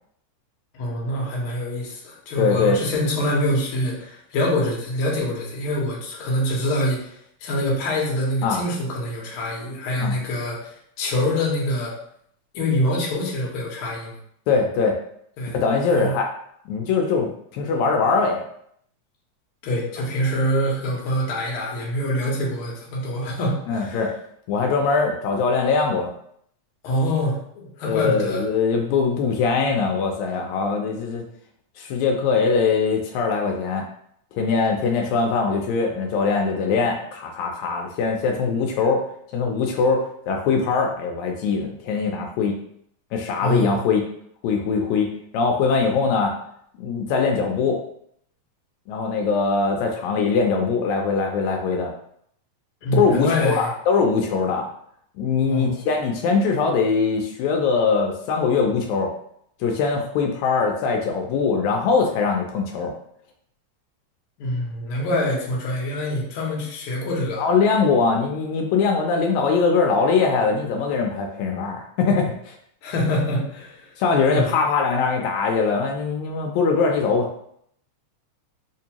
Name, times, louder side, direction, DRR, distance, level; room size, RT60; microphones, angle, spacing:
voice 1, 0.7-12.0 12.5-14.2 15.4-15.6 15.9-16.1 19.6-24.0 26.8-28.4 43.4-43.8 52.8-53.7 55.5-55.8 64.4-67.4 72.8-73.9 74.3-74.6, left 1 dB, 65° left, -3 dB, 1.4 m, -25 dB
voice 2, 2.4-2.8 8.4-8.6 10.0-10.1 14.5-15.0 15.5-16.3 16.7-18.4 23.7-24.1 24.5-26.1 27.8-31.2 31.8-33.9 34.3-39.1 39.3-42.6 43.1-44.1 44.4-46.3 46.8-47.8 48.9-51.9 52.9-54.7 55.2-59.1 59.6-63.0 67.4-72.5 74.0-77.3, left 5 dB, 80° left, 2 dB, 1.8 m, -22 dB
4.4 x 2.6 x 2.8 m, 0.68 s
omnidirectional pair, 3.3 m